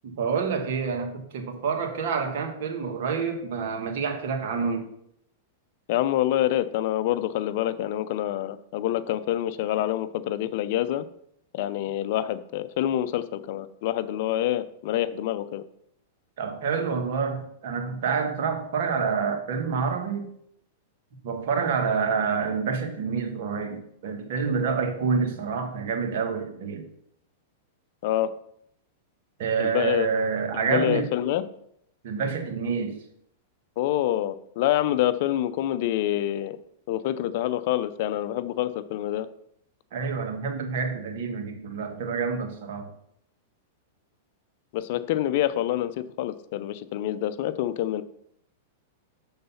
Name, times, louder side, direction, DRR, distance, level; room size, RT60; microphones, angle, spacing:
voice 1, 0.0-4.9 16.4-20.3 21.2-26.9 29.4-31.1 32.0-33.0 39.9-42.9, right 5 dB, 65° right, 4 dB, 1.4 m, -28 dB
voice 2, 5.9-11.1 11.5-15.6 28.0-28.3 29.6-30.1 30.6-31.4 33.8-36.6 36.9-39.3 44.7-48.0, left 13 dB, 60° left, 14 dB, 0.5 m, -26 dB
6.8 x 3.9 x 5.5 m, 0.72 s
hypercardioid pair, 115°, 0 cm